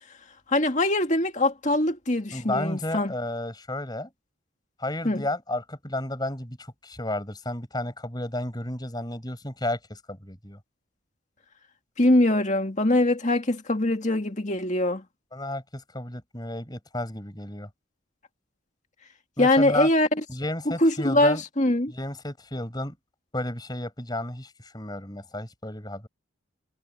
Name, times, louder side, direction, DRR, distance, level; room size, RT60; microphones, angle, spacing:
voice 1, 0.5-3.1 5.0-5.2 12.0-15.0 19.4-20.1 20.7-21.9, left 1 dB, 35° left, 2.1 m, -22 dB
voice 2, 2.3-4.1 4.8-10.6 15.3-17.7 19.4-19.9 20.3-21.4 21.9-23.0 23.3-26.1, left 1 dB, 20° left, 5.9 m, -32 dB
head